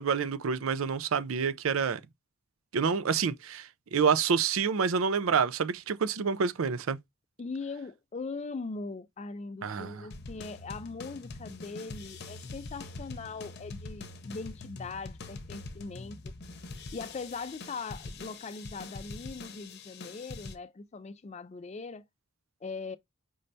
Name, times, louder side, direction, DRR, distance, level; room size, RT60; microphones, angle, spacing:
voice 1, 0.0-2.0 2.7-7.0 9.6-10.0, right 6 dB, 75° right, 0.5 m, -28 dB
voice 2, 7.4-16.3 16.9-22.0 22.6-23.0, left 4 dB, 30° left, 0.4 m, -40 dB
sound 1, 10.1-20.5, left 3 dB, 50° left, 0.7 m, -44 dB
5.2 x 3.3 x 2.6 m
head